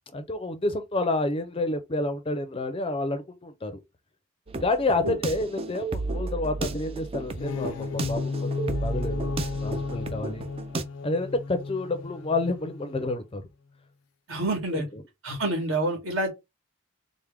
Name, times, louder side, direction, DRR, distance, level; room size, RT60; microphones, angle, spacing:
voice 1, 0.1-3.8 4.6-8.5 8.8-10.5 11.0-13.4 14.7-15.0, left 2 dB, 25° left, 0.5 m, -29 dB
sound 1, 4.5-10.8, right 3 dB, 25° right, 0.4 m, -33 dB
sound 2, 7.2-13.2, left 4 dB, 80° left, 0.4 m, -34 dB
voice 2, 14.3-14.9 15.2-16.3, right 1 dB, 70° right, 1.8 m, -27 dB
4.6 x 2.1 x 3.5 m
head